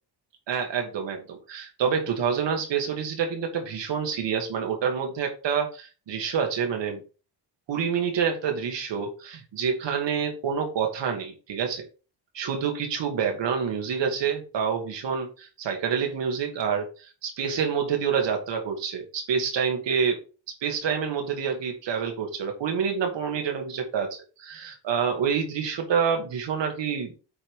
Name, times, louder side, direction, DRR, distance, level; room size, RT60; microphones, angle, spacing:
voice 1, 0.5-7.0 7.7-11.9 12.3-20.2 20.6-27.1, right 7 dB, 75° right, 3 dB, 2.5 m, -27 dB
8.7 x 4.3 x 5.0 m, 0.34 s
cardioid pair, 125°, 44 cm